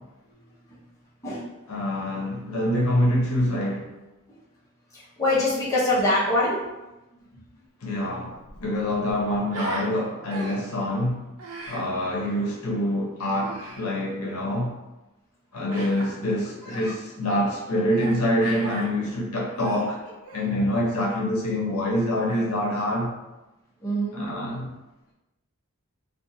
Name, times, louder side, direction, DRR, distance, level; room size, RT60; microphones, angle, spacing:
voice 1, 1.7-3.9 7.8-11.2 11.7-14.7 15.5-20.0 20.3-23.1 24.1-24.7, left 1 dB, 75° left, -3 dB, 0.7 m, -26 dB
voice 2, 4.9-6.6 7.3-7.4 16.6-16.7 23.8-24.2, left 1 dB, 15° left, -9 dB, 0.8 m, -24 dB
Human voice, 7.9-8.0 8.3-9.9 10.3-10.8 11.4-11.9 13.3-13.8 15.7-16.1 16.7-16.9 17.9-18.2 18.4-18.9 19.4-20.5, right 2 dB, 85° right, 0.6 m, -38 dB
2.5 x 2.5 x 2.7 m, 1.0 s
head